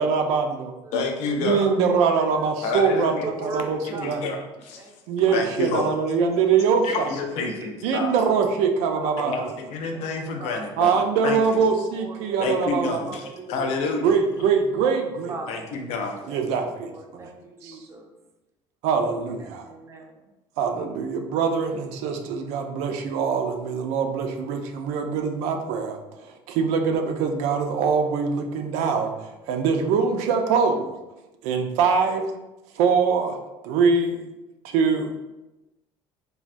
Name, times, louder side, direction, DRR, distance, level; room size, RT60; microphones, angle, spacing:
voice 1, 0.0-0.7 1.3-3.1 3.4-4.2 5.1-7.1 7.8-9.5 10.8-13.0 14.0-15.3 16.3-16.9 17.6-17.8 18.8-19.6 20.6-26.0 26.5-30.9 31.4-32.3 32.8-34.2 34.6-35.1, right 5 dB, 85° right, 5 dB, 0.4 m, -23 dB
voice 2, 0.9-1.7 2.6-3.3 4.0-4.9 5.3-5.9 6.8-8.1 9.2-11.4 12.4-14.1 15.5-16.2, left 4 dB, 75° left, 4 dB, 0.5 m, -28 dB
voice 3, 1.6-2.0 2.3-4.3 4.8-5.9 6.3-6.5 7.3-7.9 8.9-9.2 9.9-10.1 10.4-10.6 11.5-14.0 14.8-15.0 15.3-15.7 16.3-18.1 19.0-19.1 19.4-20.2, right 3 dB, 25° right, 2 dB, 0.4 m, -40 dB
3.3 x 2.2 x 2.5 m, 1.0 s
cardioid pair, 125°, 11 cm